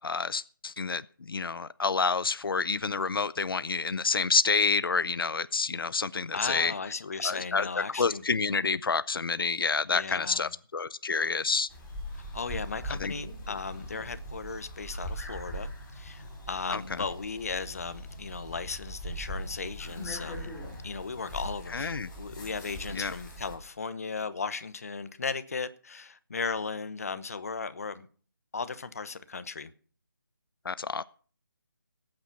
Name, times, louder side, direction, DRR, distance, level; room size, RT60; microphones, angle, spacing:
voice 1, 0.0-1.0 1.3-6.7 7.2-7.7 8.0-11.7 13.0-13.1 16.7-16.8 21.7-22.1 22.9-23.1 30.7-31.0, left 4 dB, 90° left, 0.6 m, -28 dB
voice 2, 6.3-8.2 9.8-10.5 12.3-20.5 20.8-28.1 28.5-29.7, left 4 dB, 45° left, 1.0 m, -36 dB
sound 1, 11.7-23.6, equal, 10° left, 2.5 m, -41 dB
17.5 x 8.9 x 5.9 m
hypercardioid pair, 175°, 12 cm